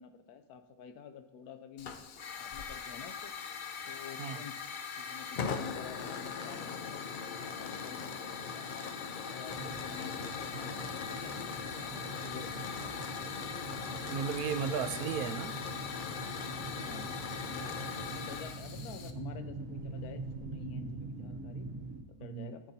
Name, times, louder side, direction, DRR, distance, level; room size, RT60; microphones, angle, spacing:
voice 1, 0.0-1.9 2.4-3.3 3.9-4.6 5.0-7.1 7.4-8.9 9.2-11.4 12.0-12.7 14.6-15.1 16.8-17.2 17.5-21.7 22.1-22.6, left 7 dB, 80° left, 9 dB, 1.2 m, -49 dB
Hiss / Fire, 1.8-19.1, left 6 dB, 65° left, 0.5 m, -40 dB
sound 1, 9.5-22.0, right 2 dB, 60° right, 1.4 m, -44 dB
voice 2, 14.1-15.6 22.2-22.6, right 8 dB, 80° right, 10 dB, 1.1 m, -35 dB
16.5 x 7.1 x 2.7 m, 1.0 s
omnidirectional pair, 1.6 m